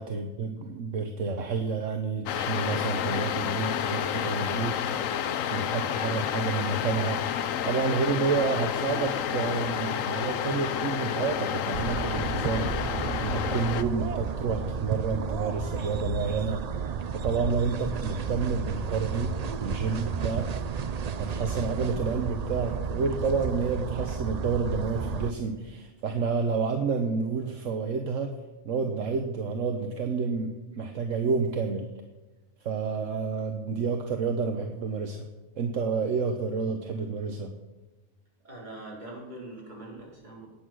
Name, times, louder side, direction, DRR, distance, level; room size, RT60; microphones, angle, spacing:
voice 1, 0.0-4.8 5.5-7.2 7.6-16.6 17.1-20.5 21.2-28.3 28.6-31.9 32.6-35.3 35.6-37.5, right 4 dB, 70° right, 5 dB, 1.4 m, -29 dB
sound 1, 2.3-13.8, left 9 dB, 75° left, 1.1 m, -30 dB
sound 2, 11.7-25.3, right 6 dB, 50° right, 0.4 m, -32 dB
voice 2, 38.4-40.5, right 2 dB, 35° right, -5 dB, 5.0 m, -42 dB
19.0 x 8.3 x 6.3 m, 1.1 s
omnidirectional pair, 1.4 m